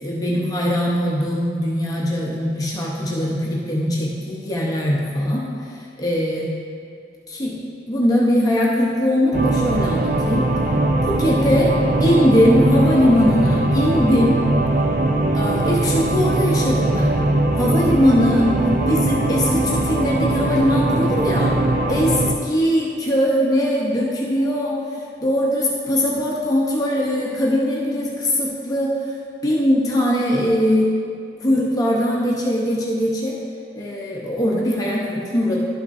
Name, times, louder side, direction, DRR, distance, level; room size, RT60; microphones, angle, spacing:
voice 1, 0.0-6.5 7.3-7.5 7.9-10.4 11.0-11.7 12.0-14.4 15.3-17.2 17.6-18.5 18.9-21.6 21.9-29.2 29.4-30.9 31.4-33.4 33.7-35.6, equal, 20° left, -4 dB, 0.9 m, -20 dB
sound 1, 9.3-22.4, right 2 dB, 50° right, 0.4 m, -20 dB
12.0 x 5.8 x 2.7 m, 2.3 s
head